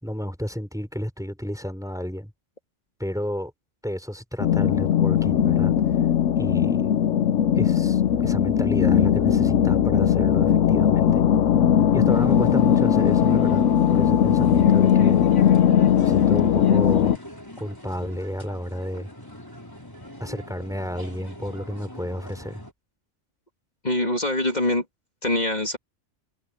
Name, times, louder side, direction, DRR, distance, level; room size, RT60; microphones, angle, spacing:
voice 1, 0.0-2.3 3.0-3.5 3.8-5.7 6.4-6.9 7.6-11.2 11.9-13.6 13.9-15.3 16.0-17.2 17.6-19.1 20.2-22.6, equal, 5° right, 3.8 m, -31 dB
sound 1, 4.4-17.2, left 9 dB, 85° left, 1.1 m, -19 dB
sound 2, 12.1-22.7, left 1 dB, 15° left, 4.2 m, -42 dB
voice 2, 23.8-24.8 25.2-25.8, left 1 dB, 35° left, 2.8 m, -24 dB
omnidirectional pair, 1.3 m